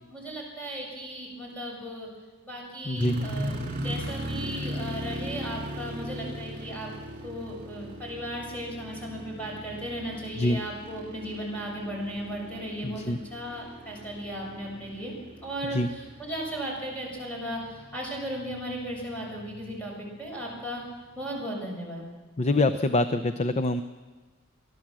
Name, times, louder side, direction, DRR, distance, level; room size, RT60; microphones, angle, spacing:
voice 1, 0.1-2.1 2.4-6.9 7.2-15.1 15.4-20.8 21.2-22.0, equal, 5° left, -3 dB, 7.0 m, -36 dB
voice 2, 2.8-3.2 10.4-10.6 12.8-13.2 15.7-15.9 22.4-23.8, left 2 dB, 30° left, 10 dB, 0.6 m, -25 dB
sound 1, 3.0-20.0 20.6-20.7 21.2-21.5, equal, 40° right, 3.1 m, -38 dB
29.0 x 12.0 x 7.6 m, 1.3 s
head